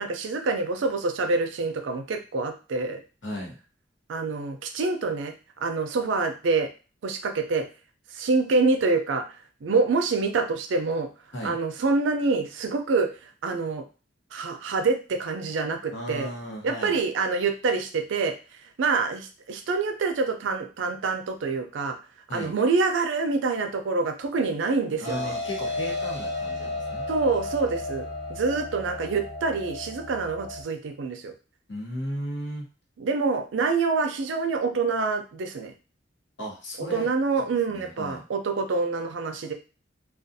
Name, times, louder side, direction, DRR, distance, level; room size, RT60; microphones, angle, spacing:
voice 1, 0.0-3.0 4.1-6.7 7.0-7.6 8.1-9.2 9.6-11.1 11.4-13.1 13.4-13.8 14.3-16.3 16.6-18.3 18.8-22.0 22.3-25.3 27.1-31.3 33.0-35.7 36.9-39.5, right 4 dB, 80° right, 6 dB, 0.4 m, -26 dB
voice 2, 3.2-3.6 11.3-11.6 15.9-17.0 22.3-22.5 25.0-27.0 31.7-32.7 36.4-37.1 37.4-38.2, equal, 70° left, -1 dB, 1.0 m, -35 dB
sound 1, 25.0-30.6, left 2 dB, 40° left, 0.7 m, -33 dB
2.4 x 2.3 x 2.6 m, 0.34 s
head